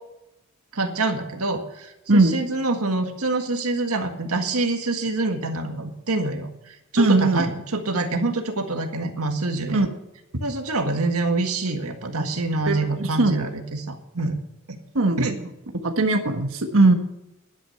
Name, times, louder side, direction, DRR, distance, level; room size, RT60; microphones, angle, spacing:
voice 1, 0.7-9.8 10.4-14.4 14.7-14.8 15.2-15.3, right 2 dB, 85° right, 5 dB, 1.8 m, -26 dB
voice 2, 7.0-7.4 9.7-9.9 12.7-13.3 14.9-15.4 15.8-16.9, right 2 dB, 70° right, 4 dB, 1.4 m, -19 dB
11.5 x 9.9 x 7.0 m, 0.90 s
head